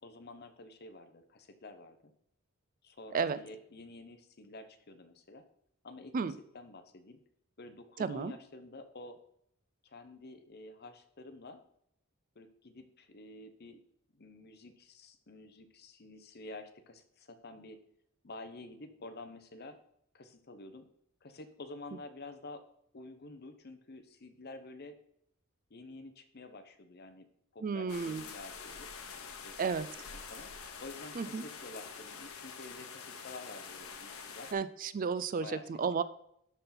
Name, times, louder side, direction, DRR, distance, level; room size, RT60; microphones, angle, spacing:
voice 1, 0.0-2.1 2.8-5.4 5.8-6.1 6.5-7.2 7.6-9.2 9.8-11.6 12.3-13.8 14.1-17.8 18.2-19.8 20.1-20.9 21.2-22.6 22.9-25.0 25.7-27.3 27.5-28.9 29.4-29.9 30.3-30.5 30.8-34.5 35.4-35.7, left 2 dB, 50° left, 8 dB, 0.9 m, -49 dB
voice 2, 8.0-8.3 27.6-28.2 29.6-29.9 31.2-31.4 34.5-36.0, right 5 dB, 40° right, 15 dB, 0.4 m, -33 dB
sound 1, 27.9-34.5, left 6 dB, 85° left, 1.0 m, -46 dB
12.0 x 4.3 x 3.9 m, 0.72 s
head